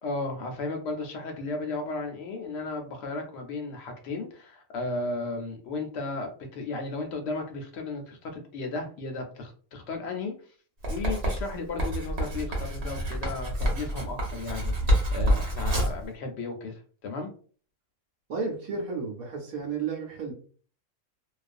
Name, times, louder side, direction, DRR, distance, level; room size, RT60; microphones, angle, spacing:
voice 1, 0.0-10.3 10.9-17.3, left 3 dB, 60° left, 4 dB, 0.7 m, -34 dB
Writing, 10.8-16.0, equal, 55° right, 1.0 m, -27 dB
voice 2, 18.3-20.3, right 5 dB, 75° right, 1 dB, 1.1 m, -32 dB
2.4 x 2.3 x 2.5 m, 0.43 s
omnidirectional pair, 1.5 m